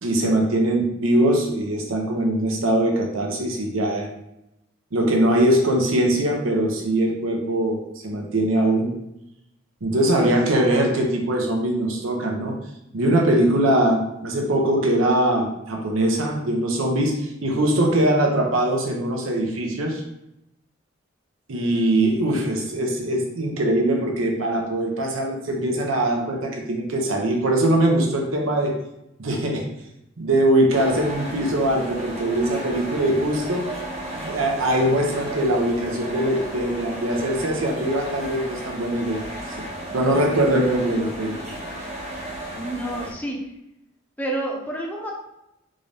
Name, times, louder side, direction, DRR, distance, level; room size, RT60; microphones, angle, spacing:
voice 1, 0.0-4.1 4.9-8.9 9.8-12.6 12.9-20.0 21.5-28.7 29.2-29.7 30.2-33.7 34.1-39.3 39.9-41.4, right 1 dB, 90° right, 1 dB, 0.8 m, -22 dB
sound 1, 30.7-43.1, right 1 dB, 35° right, 0.8 m, -34 dB
voice 2, 42.5-43.4 44.2-45.1, right 1 dB, 10° left, -1 dB, 0.6 m, -29 dB
3.7 x 2.6 x 3.3 m, 0.84 s
head